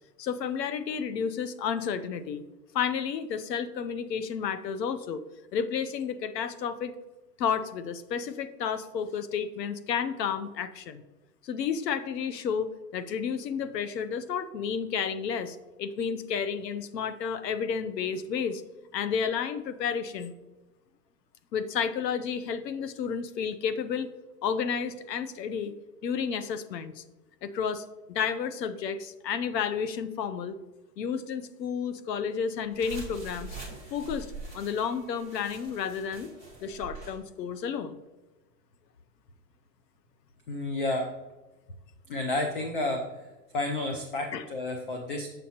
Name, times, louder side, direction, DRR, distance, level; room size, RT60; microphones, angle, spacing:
voice 1, 0.2-2.4 2.7-5.2 5.5-6.9 7.4-11.0 11.4-18.6 18.9-20.3 21.5-24.1 24.4-25.7 26.0-27.0 27.4-30.5 31.0-33.6 33.9-36.3 36.6-38.0 44.3-44.4, left 7 dB, 85° left, 13 dB, 0.8 m, -31 dB
sound 1, 32.7-37.2, right 3 dB, 15° left, 1.4 m, -43 dB
voice 2, 40.5-41.1 42.1-43.1 43.5-45.3, left 2 dB, 35° left, 3 dB, 0.5 m, -30 dB
7.0 x 6.4 x 2.9 m, 1.1 s
hypercardioid pair, 165°, 48 cm